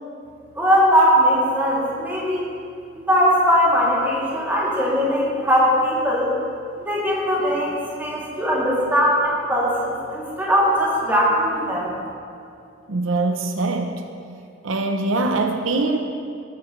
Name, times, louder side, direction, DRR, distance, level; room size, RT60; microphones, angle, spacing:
voice 1, 0.5-2.4 3.0-6.3 6.8-11.9, equal, 10° right, -7 dB, 3.0 m, -20 dB
voice 2, 12.9-14.0 14.6-16.0, right 2 dB, 90° right, 4 dB, 0.8 m, -22 dB
19.0 x 9.8 x 3.3 m, 2.4 s
head